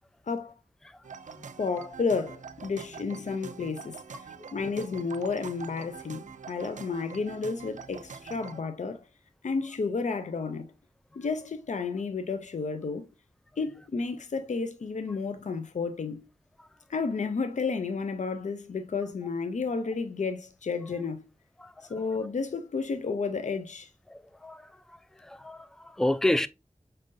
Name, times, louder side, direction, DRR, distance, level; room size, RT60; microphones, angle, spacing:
sound 1, 1.0-8.6, right 5 dB, 80° right, 0.4 m, -45 dB
voice 1, 1.6-4.0 4.5-9.0 9.4-10.7 11.2-13.1 13.6-16.3 16.9-21.3 21.8-23.9, left 4 dB, 70° left, 0.5 m, -31 dB
voice 2, 24.1-24.7 25.2-26.5, left 1 dB, 5° left, 0.3 m, -29 dB
5.3 x 3.7 x 2.5 m
wide cardioid pair, 65°, 13 cm